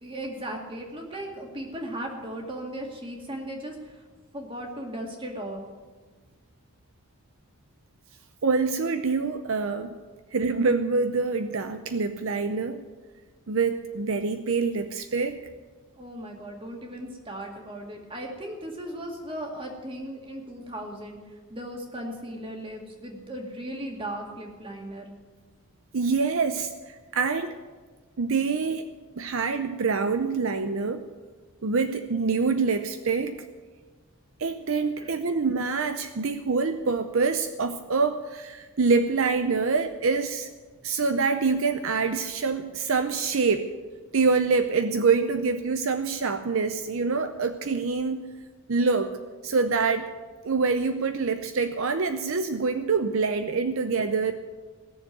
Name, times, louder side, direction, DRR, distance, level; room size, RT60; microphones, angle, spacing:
voice 1, 0.0-4.0 4.3-5.6 15.9-25.1 35.0-35.1, right 1 dB, 25° right, 1 dB, 2.1 m, -37 dB
voice 2, 8.4-10.0 10.3-12.8 13.5-15.4 25.9-27.5 28.2-31.0 31.6-33.5 34.4-40.5 40.8-43.7 44.1-48.3 48.7-49.1 49.4-50.1 50.4-54.3, right 4 dB, 65° right, 8 dB, 0.6 m, -25 dB
17.5 x 7.1 x 9.1 m, 1.4 s
head